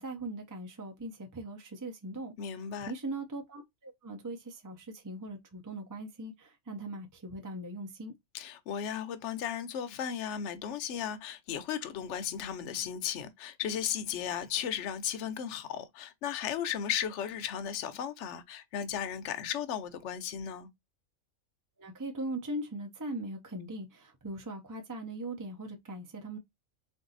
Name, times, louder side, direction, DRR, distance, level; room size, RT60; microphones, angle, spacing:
voice 1, 0.0-8.1 21.8-26.4, right 1 dB, 25° right, 0.4 m, -40 dB
voice 2, 2.4-2.9 8.3-20.7, left 9 dB, 60° left, 0.9 m, -35 dB
3.9 x 2.7 x 3.9 m
omnidirectional pair, 1.5 m